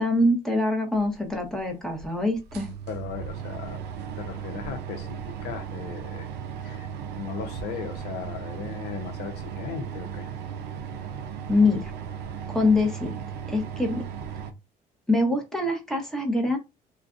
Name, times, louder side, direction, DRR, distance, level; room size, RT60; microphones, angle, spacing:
voice 1, 0.0-2.7 11.5-11.8 12.5-13.1 13.5-14.0 15.1-16.6, left 2 dB, 5° left, 0.8 m, -24 dB
sound 1, 1.3-1.4 2.0-2.1 2.4-14.5, right 7 dB, 85° right, 0.5 m, -36 dB
voice 2, 2.9-3.8 4.1-6.3 6.6-6.9 7.1-10.3, left 7 dB, 75° left, 0.7 m, -37 dB
2.4 x 2.2 x 2.4 m
cardioid pair, 110°, 17 cm